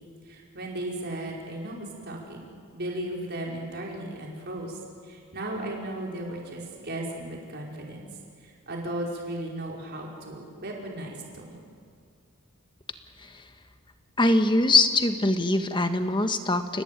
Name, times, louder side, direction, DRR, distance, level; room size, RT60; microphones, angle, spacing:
voice 1, 0.3-4.8 5.0-8.1 8.4-11.6, right 1 dB, 45° right, -1 dB, 5.2 m, -36 dB
voice 2, 14.2-16.8, left 2 dB, 20° left, 8 dB, 1.4 m, -23 dB
30.0 x 18.5 x 9.2 m, 2.1 s
head